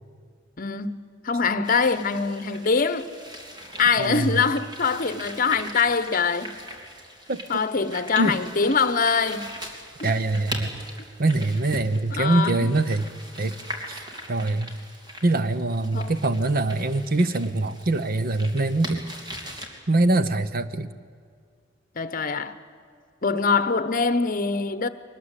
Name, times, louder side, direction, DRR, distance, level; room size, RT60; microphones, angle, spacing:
voice 1, 0.6-1.0 1.2-3.1 3.8-6.5 7.5-9.5 10.0-10.1 11.0-11.1 12.1-12.7 15.9-16.1 22.0-22.5 23.2-24.9, left 5 dB, 50° left, 1.0 m, -23 dB
sound 1, 1.6-19.7, equal, 25° right, 2.9 m, -40 dB
voice 2, 4.0-4.4 7.3-7.6 8.2-8.4 10.0-10.7 11.2-13.1 13.4-13.5 13.9-14.0 14.3-14.7 15.2-19.1 19.9-20.9, right 2 dB, 55° right, 0.9 m, -23 dB
22.5 x 19.5 x 8.3 m
head